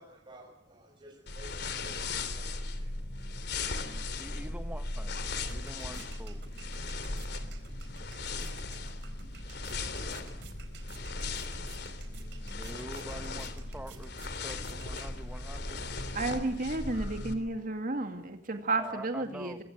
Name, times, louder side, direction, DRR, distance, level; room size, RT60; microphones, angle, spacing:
voice 1, 0.0-4.5, right 1 dB, 30° right, 6.3 m, -57 dB
sound 1, 1.3-17.3, left 3 dB, 65° left, 3.3 m, -37 dB
voice 2, 4.2-5.2 5.5-6.4 12.4-15.9 18.8-19.6, right 1 dB, 10° right, 1.5 m, -45 dB
sound 2, 4.9-15.6, right 7 dB, 70° right, 4.5 m, -55 dB
voice 3, 16.1-19.6, right 2 dB, 50° right, 2.2 m, -32 dB
25.0 x 24.0 x 8.1 m
head